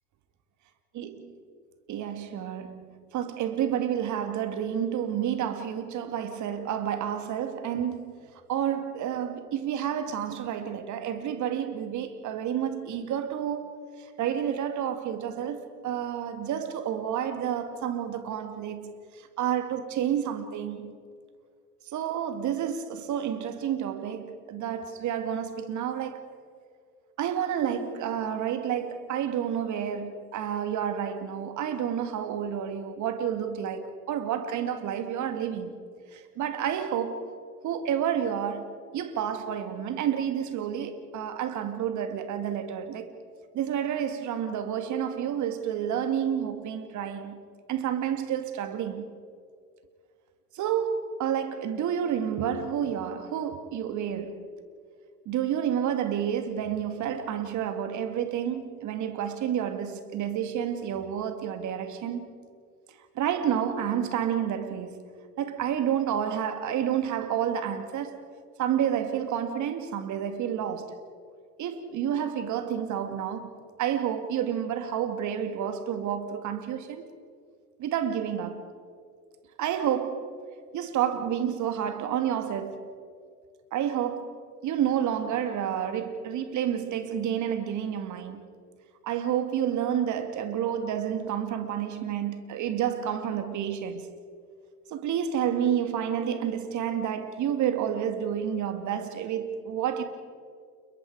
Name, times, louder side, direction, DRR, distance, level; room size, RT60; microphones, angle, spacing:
voice 1, 1.9-8.2 8.5-13.8 14.2-19.0 19.4-21.0 21.9-26.3 27.2-35.7 36.1-37.2 37.6-43.1 43.5-47.4 47.7-49.1 50.5-54.5 55.3-62.3 63.2-65.0 65.4-68.2 68.6-70.9 71.6-77.1 77.8-78.7 79.6-80.3 80.7-82.8 83.7-84.3 84.6-88.4 89.0-94.1 94.9-100.0, right 9 dB, 40° right, 2.4 m, -30 dB
29.0 x 22.0 x 4.9 m
hypercardioid pair, 85°, 45 cm